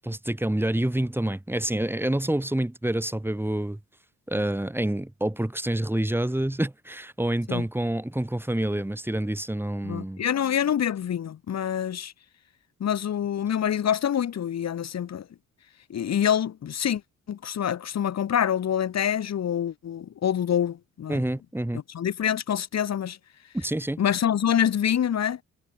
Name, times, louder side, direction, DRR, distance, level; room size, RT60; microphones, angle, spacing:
voice 1, 0.0-3.8 4.3-10.2 21.1-21.8 23.5-24.0, right 1 dB, 5° right, 4.6 m, -27 dB
voice 2, 9.8-12.1 12.8-15.3 15.9-17.0 17.3-21.2 21.9-23.2 24.0-25.4, left 9 dB, 60° left, 4.0 m, -26 dB
cardioid pair, 90°, 30 cm